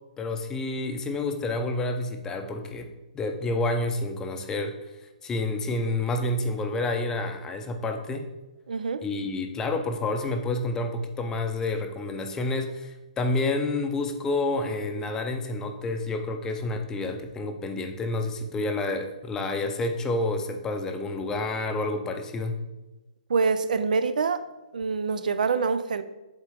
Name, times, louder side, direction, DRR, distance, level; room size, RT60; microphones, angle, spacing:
voice 1, 0.2-4.8 5.2-8.3 9.0-22.6, left 2 dB, 15° left, 5 dB, 0.5 m, -29 dB
voice 2, 8.7-9.0 23.3-24.5 24.7-26.0, right 5 dB, 80° right, 12 dB, 0.4 m, -25 dB
7.9 x 3.7 x 3.5 m, 1.1 s
hypercardioid pair, 145°, 4 cm